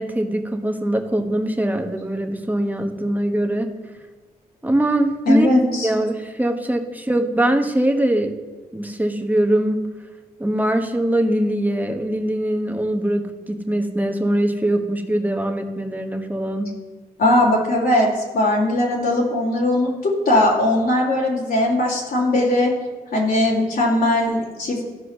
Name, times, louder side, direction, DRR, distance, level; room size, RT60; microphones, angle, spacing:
voice 1, 0.0-3.7 4.6-5.5 5.8-8.3 8.7-9.9 10.4-16.7, right 1 dB, 10° right, 4 dB, 1.3 m, -22 dB
voice 2, 5.3-5.9 17.2-22.7 23.1-24.8, left 1 dB, 70° left, -5 dB, 2.6 m, -19 dB
13.5 x 4.9 x 5.9 m, 1.3 s
supercardioid pair, 50°, 16 cm